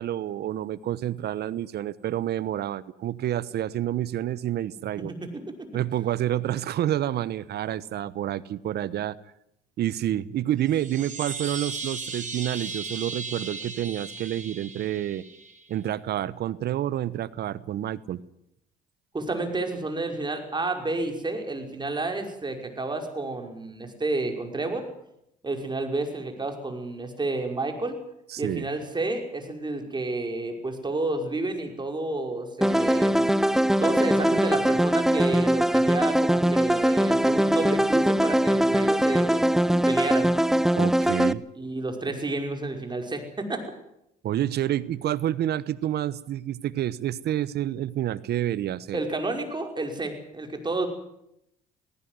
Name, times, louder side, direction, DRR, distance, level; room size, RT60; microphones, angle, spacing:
voice 1, 0.0-5.1 5.7-9.2 9.8-15.2 15.7-18.2 28.3-28.7 40.8-41.4 44.2-49.0, right 12 dB, 60° right, 19 dB, 1.0 m, -28 dB
voice 2, 5.0-5.7 19.1-24.9 25.4-28.0 28.4-33.3 33.8-39.4 39.9-40.4 41.6-43.6 48.9-50.9, right 2 dB, 25° right, 4 dB, 5.7 m, -30 dB
sound 1, 10.6-15.6, right 4 dB, 40° right, 6.8 m, -36 dB
sound 2, 32.6-41.3, equal, ahead, 0.9 m, -22 dB
19.5 x 17.5 x 9.6 m, 0.80 s
supercardioid pair, 70°, 19 cm